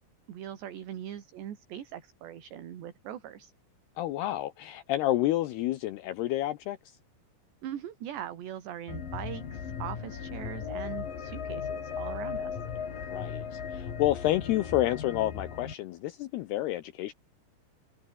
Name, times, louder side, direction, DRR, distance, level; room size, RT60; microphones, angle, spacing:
voice 1, 0.3-3.5 7.6-12.6, right 10 dB, 65° right, 4.4 m, -41 dB
voice 2, 4.0-6.8 13.1-17.1, left 15 dB, 80° left, 2.4 m, -29 dB
sound 1, 8.9-15.7, left 7 dB, 45° left, 4.8 m, -37 dB
omnidirectional pair, 5.7 m